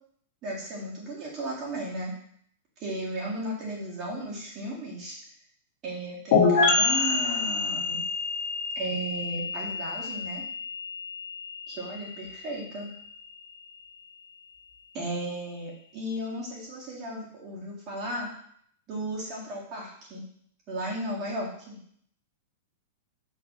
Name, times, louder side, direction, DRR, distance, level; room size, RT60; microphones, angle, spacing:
voice 1, 0.4-2.2 2.8-5.2 5.8-8.0 8.7-10.4 11.7-12.9 14.9-18.3 18.9-20.2 20.7-21.8, right 1 dB, 25° right, -5 dB, 2.0 m, -35 dB
sound 1, 6.3-13.9, left 4 dB, 50° left, 2.0 m, -28 dB
5.8 x 3.4 x 5.5 m, 0.65 s
supercardioid pair, 160°, 0 cm